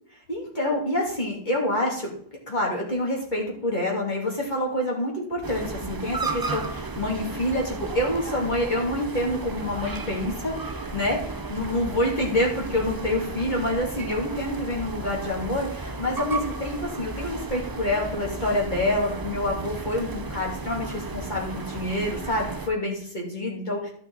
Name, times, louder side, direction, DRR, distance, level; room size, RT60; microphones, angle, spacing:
voice 1, 0.3-2.1 2.5-23.9, left 1 dB, 35° left, -2 dB, 2.6 m, -27 dB
sound 1, 5.4-22.7, right 3 dB, 35° right, 0.3 m, -34 dB
12.0 x 6.2 x 3.9 m, 0.62 s
omnidirectional pair, 1.3 m